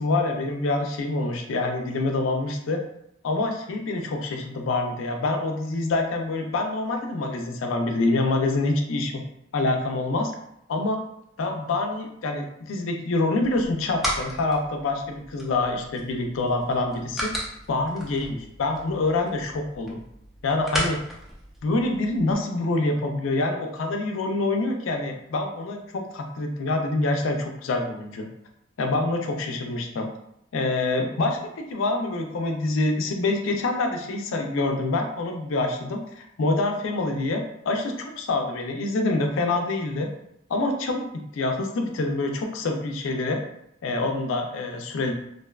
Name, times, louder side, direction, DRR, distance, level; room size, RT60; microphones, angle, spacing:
voice 1, 0.0-2.8 3.2-9.1 9.5-10.3 10.7-11.0 11.4-17.3 17.7-20.0 20.4-21.0 21.6-28.3 28.8-30.1 30.5-31.4 31.7-40.1 40.5-43.4 43.8-45.1, left 2 dB, 90° left, 3 dB, 0.4 m, -26 dB
sound 1, 13.4-22.3, equal, ahead, 0.3 m, -35 dB
2.6 x 2.2 x 2.3 m, 0.76 s
head